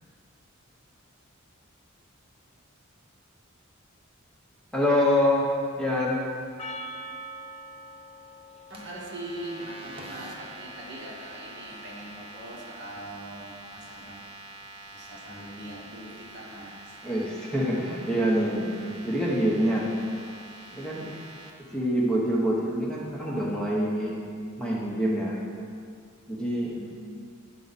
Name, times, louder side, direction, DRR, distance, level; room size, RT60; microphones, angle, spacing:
voice 1, 4.7-5.5 5.8-6.2 17.0-18.7 19.0-19.9 20.7-21.1 21.7-24.2 24.6-25.4 26.3-26.7, equal, 5° left, -5 dB, 1.0 m, -25 dB
Percussion, 6.6-11.1, right 1 dB, 30° left, 0.3 m, -44 dB
sound 1, 8.7-21.5, right 2 dB, 25° right, 0.8 m, -46 dB
voice 2, 8.7-14.2 14.9-17.0 21.7-21.8 26.5-27.3, right 1 dB, 55° right, -3 dB, 1.4 m, -42 dB
10.5 x 4.9 x 4.1 m, 2.3 s
head